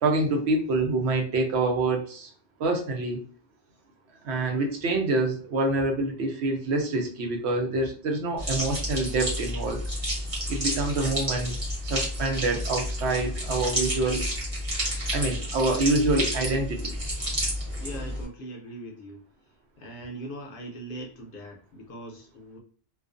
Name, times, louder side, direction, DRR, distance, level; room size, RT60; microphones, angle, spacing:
voice 1, 0.0-2.3 2.6-3.2 4.2-9.8 10.5-11.6 11.8-14.3 15.1-16.9, right 2 dB, 75° right, 2 dB, 0.9 m, -26 dB
sound 1, 8.4-18.2, equal, 30° right, 0.9 m, -30 dB
voice 2, 17.8-19.2 19.8-22.6, right 1 dB, 60° left, 1 dB, 0.7 m, -40 dB
2.4 x 2.3 x 2.4 m, 0.41 s
omnidirectional pair, 1.2 m